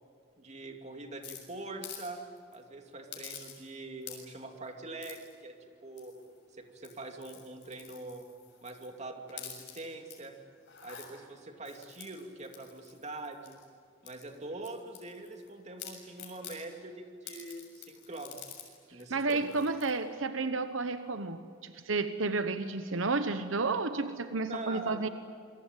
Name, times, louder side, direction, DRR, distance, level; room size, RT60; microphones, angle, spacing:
voice 1, 0.4-2.2 2.5-5.5 5.8-6.1 6.6-8.3 8.6-10.4 10.8-13.6 14.0-18.5 18.9-19.7 24.5-25.0, right 2 dB, 35° right, 4 dB, 2.6 m, -43 dB
sound 1, 1.2-2.1 2.4-2.6 3.1-3.7 4.0-4.4 5.0-5.3 6.0-6.4 6.7-8.9 9.3-10.2 10.6-11.1 11.6-13.7 14.1-15.5 15.8-16.6 17.3-18.7 19.0-19.1 19.3-19.9, left 9 dB, 60° left, 6.9 m, -48 dB
voice 2, 18.9-25.1, right 3 dB, 80° right, 10 dB, 1.0 m, -32 dB
28.0 x 23.0 x 9.1 m, 2.2 s
head